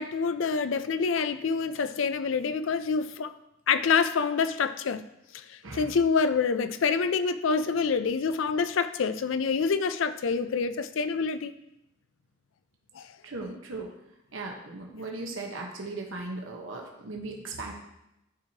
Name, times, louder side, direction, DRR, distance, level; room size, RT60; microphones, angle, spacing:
voice 1, 0.0-3.3 3.7-5.0 5.3-11.5 12.9-13.1, left 5 dB, 75° left, 11 dB, 0.4 m, -27 dB
voice 2, 5.6-6.0 13.2-13.9 14.3-17.7, right 3 dB, 85° right, 0 dB, 1.1 m, -37 dB
12.5 x 4.6 x 2.9 m, 0.88 s
head